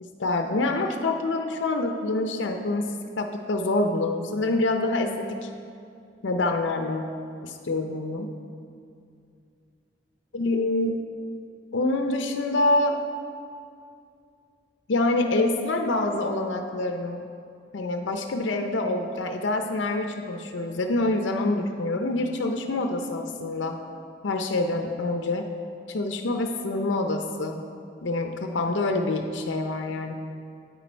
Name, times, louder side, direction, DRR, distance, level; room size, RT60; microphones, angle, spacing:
voice 1, 0.0-5.5 6.2-7.1 7.4-8.4 10.3-11.0 11.7-13.0 14.9-17.2 17.7-23.8 24.2-25.5 25.9-27.7 28.0-30.2, left 2 dB, 75° left, 5 dB, 0.6 m, -26 dB
10.0 x 8.9 x 4.4 m, 2.5 s
head